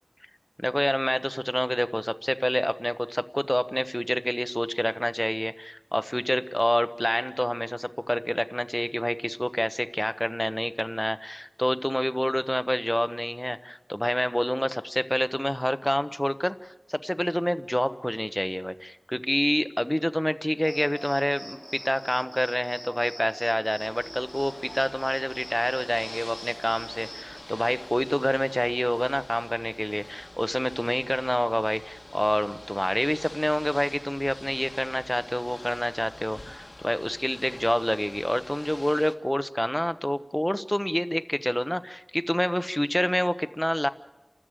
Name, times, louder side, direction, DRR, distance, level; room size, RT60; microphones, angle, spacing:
voice 1, 0.6-43.9, equal, 10° left, 11 dB, 1.0 m, -27 dB
Cricket, 20.6-27.4, equal, 20° right, 3.9 m, -44 dB
Ocean / Boat Water vehicle, 23.8-39.2, left 1 dB, 45° left, 1.5 m, -46 dB
30.0 x 13.5 x 9.0 m, 1.0 s
wide cardioid pair, 50°, 0 cm